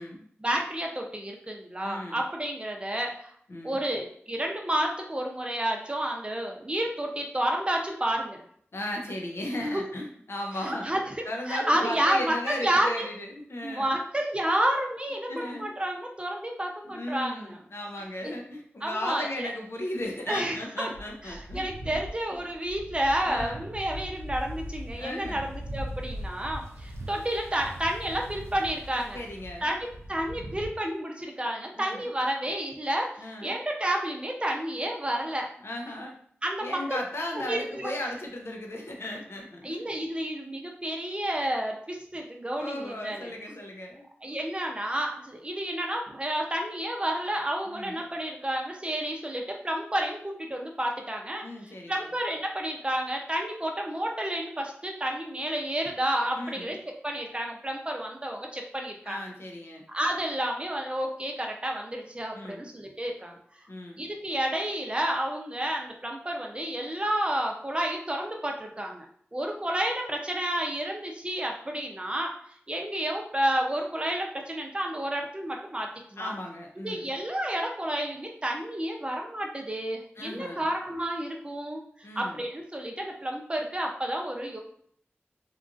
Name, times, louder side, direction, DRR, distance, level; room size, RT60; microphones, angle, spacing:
voice 1, 0.4-3.3 3.6-8.4 9.7-9.8 10.6-11.1 11.5-13.1 13.6-17.6 18.2-18.3 18.8-19.5 20.3-20.9 21.2-29.2 29.6-29.8 30.1-35.5 36.4-37.0 37.4-37.9 39.6-43.3 44.2-59.3 59.9-63.4 64.0-69.1 69.3-72.3 72.7-76.3 76.8-84.6, right 1 dB, 25° right, 1 dB, 0.6 m, -30 dB
voice 2, 1.8-2.2 3.5-3.8 8.7-10.9 11.2-14.0 15.3-15.7 16.8-22.0 23.3-23.7 24.9-25.5 29.1-29.7 31.7-32.1 33.2-33.6 35.6-36.2 36.6-39.8 42.6-44.0 47.7-48.0 51.4-52.1 56.4-56.7 59.0-59.8 62.3-62.7 63.7-64.0 76.2-77.1 80.2-80.7 82.0-82.4, left 1 dB, 70° left, 1 dB, 0.6 m, -36 dB
sound 1, 20.9-30.7, equal, 90° right, 0.5 m, -40 dB
2.9 x 2.4 x 2.5 m, 0.62 s
cardioid pair, 40°, 4 cm